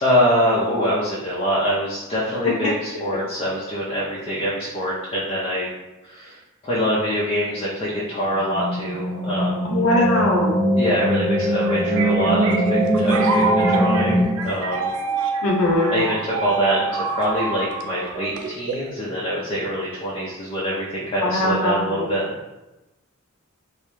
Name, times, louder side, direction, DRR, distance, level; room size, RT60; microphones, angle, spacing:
voice 1, 0.0-5.7 6.0-6.4 6.6-9.6 10.8-14.9 15.9-22.3, equal, 30° left, -6 dB, 0.4 m, -24 dB
sound 1, 8.3-14.3, equal, 25° right, 0.9 m, -21 dB
voice 2, 9.6-10.5 15.4-15.9 21.2-21.7, left 1 dB, 90° left, -1 dB, 0.6 m, -20 dB
sound 2, 11.4-18.9, right 4 dB, 80° right, 0.3 m, -27 dB
2.3 x 2.1 x 3.0 m, 1.0 s
head